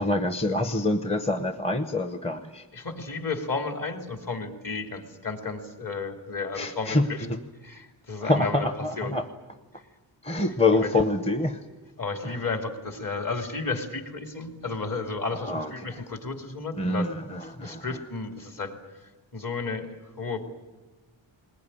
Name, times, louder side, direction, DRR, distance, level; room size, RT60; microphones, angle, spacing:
voice 1, 0.0-2.7 6.5-7.4 8.2-9.2 10.2-11.6 12.2-12.4 15.4-15.7 16.0-16.1 16.8-18.0, left 2 dB, 15° left, 8 dB, 0.9 m, -26 dB
voice 2, 2.7-7.2 7.6-8.7 9.0-9.1 10.3-10.4 10.8-10.9 12.0-17.1 17.6-18.8 19.3-20.5, left 4 dB, 45° left, 4 dB, 2.9 m, -33 dB
21.0 x 20.0 x 9.9 m, 1.2 s
wide cardioid pair, 140°, 46 cm